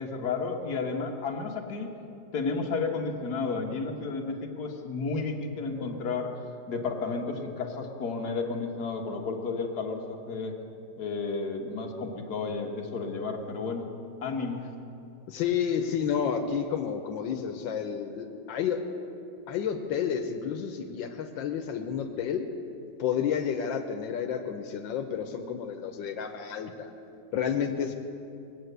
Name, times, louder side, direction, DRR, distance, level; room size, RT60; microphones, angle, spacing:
voice 1, 0.0-1.9 2.3-10.5 11.0-13.9 14.2-14.6, left 4 dB, 60° left, 1 dB, 1.9 m, -32 dB
voice 2, 15.3-18.8 19.5-22.5 23.0-26.9 27.3-28.0, left 8 dB, 90° left, 5 dB, 1.6 m, -30 dB
20.5 x 8.4 x 8.0 m, 2.6 s
omnidirectional pair, 2.0 m